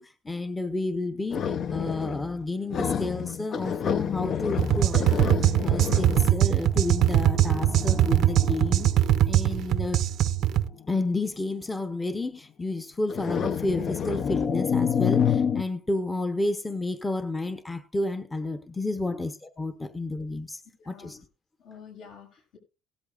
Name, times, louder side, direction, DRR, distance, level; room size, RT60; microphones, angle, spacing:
voice 1, 0.0-8.9 9.3-10.0 10.9-20.6 20.9-21.2, left 2 dB, 10° left, 0.8 m, -31 dB
sound 1, 1.3-2.4 2.7-9.6 10.5-10.8 13.1-15.6, left 7 dB, 45° left, 0.5 m, -29 dB
sound 2, 4.6-10.7, right 12 dB, 60° right, 0.6 m, -22 dB
voice 2, 20.6-21.2 21.6-22.6, left 6 dB, 80° left, 6.8 m, -48 dB
17.0 x 13.5 x 2.4 m
cardioid pair, 145°, 0 cm